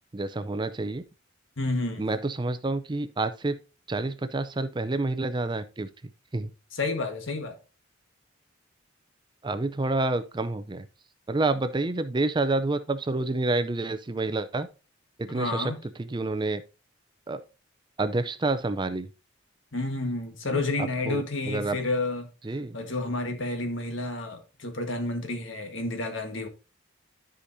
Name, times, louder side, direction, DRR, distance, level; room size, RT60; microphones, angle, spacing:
voice 1, 0.1-1.0 2.0-3.6 3.9-5.9 6.3-6.5 9.4-10.9 11.3-14.7 15.2-15.7 16.0-16.6 17.3-17.4 18.0-19.1 20.5-20.6 21.0-21.8 22.4-22.8, right 2 dB, 25° right, 0.5 m, -28 dB
voice 2, 1.6-2.0 6.7-7.6 15.3-15.8 19.7-22.3 22.7-26.5, left 2 dB, 75° left, 1.5 m, -30 dB
12.5 x 5.1 x 2.7 m
head